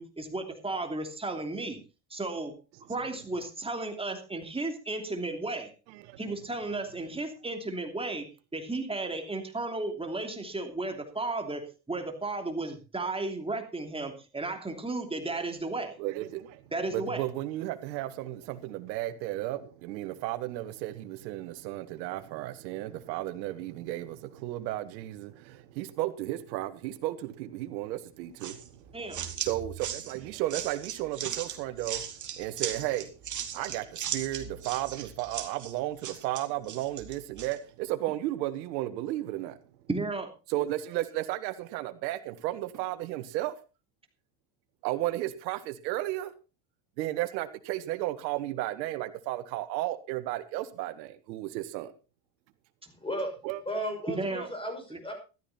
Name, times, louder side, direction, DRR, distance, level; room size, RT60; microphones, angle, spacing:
voice 1, 0.0-1.8 2.1-2.5 2.9-5.7 6.2-8.3 8.5-15.9 16.7-17.2 28.9-29.2 39.9-40.3 54.1-54.5 54.9-55.0, right 2 dB, 10° right, 2.9 m, -34 dB
voice 2, 5.9-6.2 16.0-16.6 16.9-29.0 29.4-32.0 32.3-33.1 33.5-39.6 40.5-43.5 44.8-46.3 47.0-51.9 53.4-53.6, right 15 dB, 90° right, 1.6 m, -34 dB
sound 1, 28.4-37.6, right 9 dB, 35° right, 2.6 m, -38 dB
voice 3, 53.7-55.1, equal, 10° left, 6.2 m, -34 dB
14.5 x 12.5 x 4.2 m
supercardioid pair, 115°, 50 cm